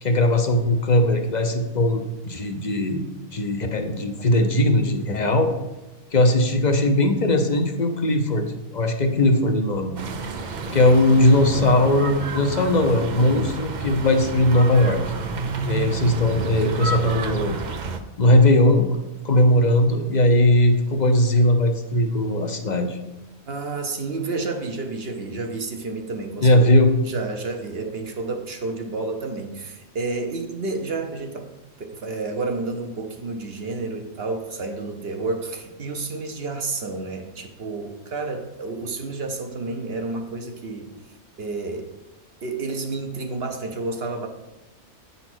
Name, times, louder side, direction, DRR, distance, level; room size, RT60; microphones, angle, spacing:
voice 1, 0.0-3.0 3.3-5.5 6.1-10.0 10.7-15.0 15.7-17.5 18.2-18.9 19.2-23.0 26.4-26.9, left 1 dB, 40° left, 4 dB, 0.6 m, -19 dB
sound 1, 10.0-18.0, right 3 dB, 65° right, 0.4 m, -30 dB
voice 2, 23.5-26.6 27.0-31.5 31.8-40.9 41.4-41.9 42.4-44.3, right 3 dB, 50° right, 5 dB, 1.0 m, -30 dB
8.9 x 4.1 x 6.0 m, 1.0 s
omnidirectional pair, 1.5 m